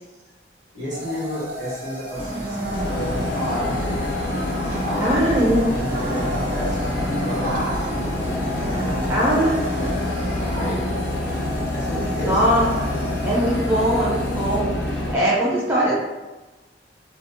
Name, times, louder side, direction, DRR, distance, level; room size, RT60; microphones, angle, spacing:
voice 1, 0.7-4.1 4.8-11.1 11.7-12.4, equal, 70° right, -7 dB, 1.3 m, -32 dB
sound 1, 0.9-14.6, left 1 dB, 55° right, 0.6 m, -35 dB
sound 2, 2.1-10.7, right 1 dB, 90° right, 0.7 m, -32 dB
sound 3, 2.7-15.1, left 1 dB, 70° left, 0.4 m, -26 dB
voice 2, 5.0-5.6 9.1-9.6 12.2-12.7 13.3-15.9, right 1 dB, 10° right, -6 dB, 0.4 m, -21 dB
2.6 x 2.0 x 2.4 m, 1.1 s
head